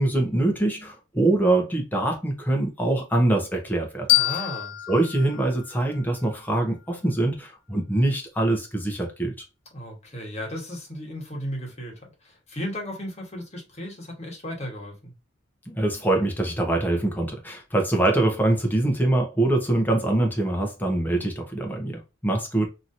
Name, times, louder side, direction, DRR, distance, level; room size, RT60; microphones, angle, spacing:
voice 1, 0.0-4.1 4.9-9.3 15.7-22.7, right 2 dB, 10° left, 0.8 m, -24 dB
sound 1, 4.1-6.9, left 19 dB, 75° left, 0.5 m, -27 dB
voice 2, 4.1-4.8 9.7-15.1, equal, 35° left, 1.3 m, -35 dB
2.9 x 2.7 x 2.6 m
head